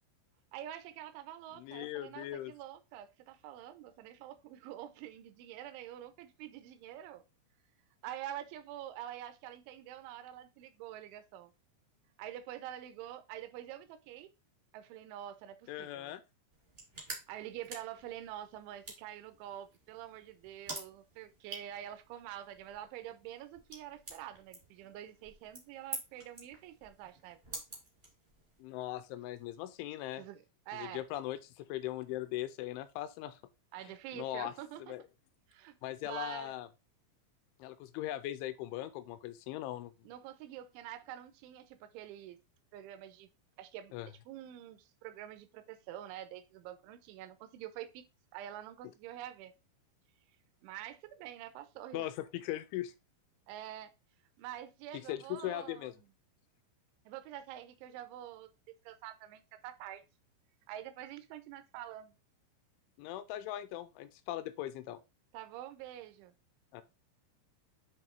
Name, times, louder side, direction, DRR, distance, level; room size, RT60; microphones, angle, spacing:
voice 1, 0.5-7.2 8.0-11.5 12.2-14.3 14.7-16.1 17.3-27.6 30.2-31.0 33.7-34.9 35.5-35.8 36.0-36.6 40.0-42.4 42.7-43.3 43.6-48.1 48.3-49.5 50.6-52.1 53.5-53.9 54.4-56.1 57.1-60.1 60.7-62.2 65.3-66.3, right 12 dB, 85° right, 2.8 m, -46 dB
voice 2, 1.5-2.5 15.7-16.2 28.6-30.2 30.7-33.4 33.8-34.5 34.8-35.0 35.8-36.7 37.6-39.9 43.9-44.1 51.9-52.9 55.1-55.9 63.0-65.0 66.7-66.8, left 14 dB, 85° left, 2.8 m, -39 dB
sound 1, 16.5-28.6, right 2 dB, 50° right, 0.6 m, -49 dB
9.3 x 3.1 x 4.4 m
omnidirectional pair, 5.8 m